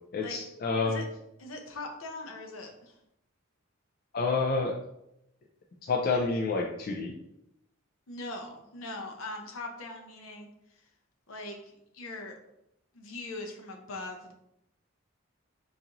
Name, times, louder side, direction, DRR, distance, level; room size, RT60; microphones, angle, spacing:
voice 1, 0.1-1.0 4.1-4.8 5.9-7.1, left 3 dB, 45° left, -1 dB, 0.3 m, -28 dB
voice 2, 1.4-2.9 8.1-10.5 11.3-12.4 12.9-14.3, left 2 dB, 70° left, 3 dB, 0.7 m, -41 dB
3.9 x 2.5 x 2.9 m, 0.82 s
head